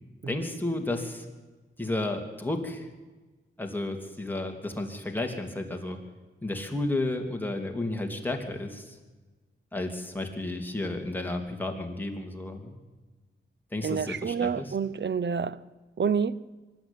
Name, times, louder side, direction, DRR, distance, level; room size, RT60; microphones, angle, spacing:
voice 1, 0.3-1.2 1.8-2.9 3.6-6.0 6.4-8.9 9.7-12.7 13.7-14.7, left 2 dB, 10° left, 3.1 m, -32 dB
voice 2, 13.8-15.6 16.0-16.4, right 6 dB, 60° right, 0.8 m, -28 dB
24.0 x 12.0 x 9.2 m
wide cardioid pair, 75°, 21 cm